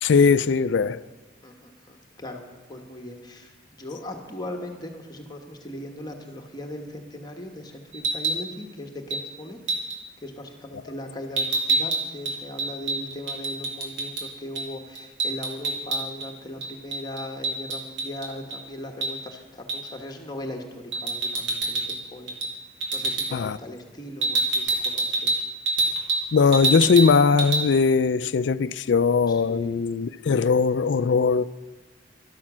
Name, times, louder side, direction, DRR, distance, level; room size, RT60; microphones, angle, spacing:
voice 1, 0.0-1.0 23.3-23.6 26.3-31.5, left 5 dB, 65° left, 0.4 m, -20 dB
voice 2, 1.4-2.4 2.7-9.6 10.2-22.3 22.9-25.4 29.3-29.8, left 1 dB, 20° left, 1.2 m, -39 dB
sound 1, 7.9-8.4 9.1-9.3 9.7-10.0 11.4-14.3 14.5-14.7 14.9-16.3 16.6-18.6 19.0-19.1 19.7-19.9 20.9-22.0 22.3-22.5 22.8-23.3 24.2-26.2 26.5-27.1 27.4-27.6, right 3 dB, 75° right, 2.4 m, -26 dB
13.0 x 12.0 x 6.2 m
head